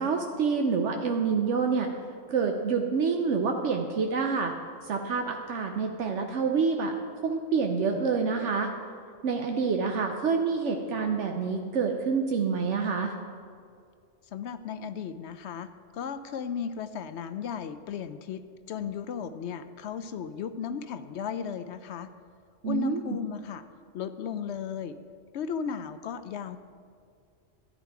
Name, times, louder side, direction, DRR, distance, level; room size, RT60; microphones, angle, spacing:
voice 1, 0.0-1.9 2.3-4.5 4.8-6.9 7.2-8.7 9.2-13.1 22.6-23.2, right 5 dB, 75° right, 3 dB, 1.1 m, -27 dB
voice 2, 14.3-22.1 22.6-23.6 23.9-25.0 25.3-26.6, left 7 dB, 70° left, 11 dB, 0.8 m, -35 dB
12.5 x 10.0 x 4.7 m, 2.2 s
omnidirectional pair, 1.2 m